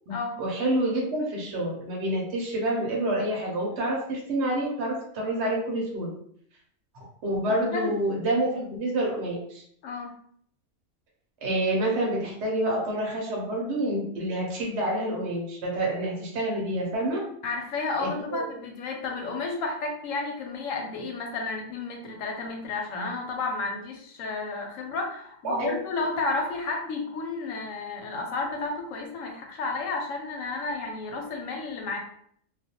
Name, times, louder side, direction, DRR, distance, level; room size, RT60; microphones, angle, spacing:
voice 1, 0.1-6.1 7.2-9.6 11.4-17.3 18.0-18.4 25.4-25.8, right 1 dB, 65° right, -3 dB, 0.9 m, -28 dB
voice 2, 7.5-7.9 9.8-10.1 17.4-32.0, left 3 dB, 85° left, 2 dB, 1.0 m, -32 dB
2.4 x 2.1 x 2.7 m, 0.64 s
omnidirectional pair, 1.3 m